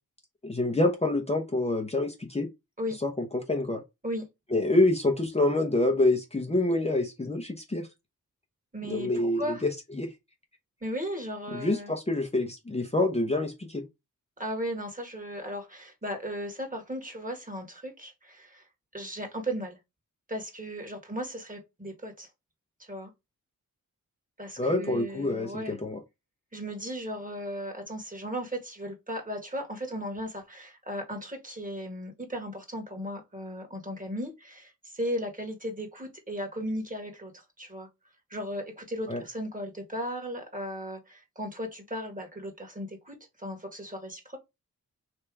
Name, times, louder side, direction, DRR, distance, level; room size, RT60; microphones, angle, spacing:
voice 1, 0.4-2.5 3.0-3.8 4.5-7.9 8.8-9.7 10.0-10.1 11.5-13.8 24.6-26.0 39.1-39.2, left 2 dB, 20° left, 0.9 m, -27 dB
voice 2, 8.7-9.6 10.8-11.9 14.4-18.6 18.9-19.8 20.3-22.3 22.8-23.1 24.4-25.8 26.5-37.9 38.3-44.4, equal, 25° right, 1.9 m, -36 dB
3.4 x 2.9 x 4.7 m
cardioid pair, 55°, 35 cm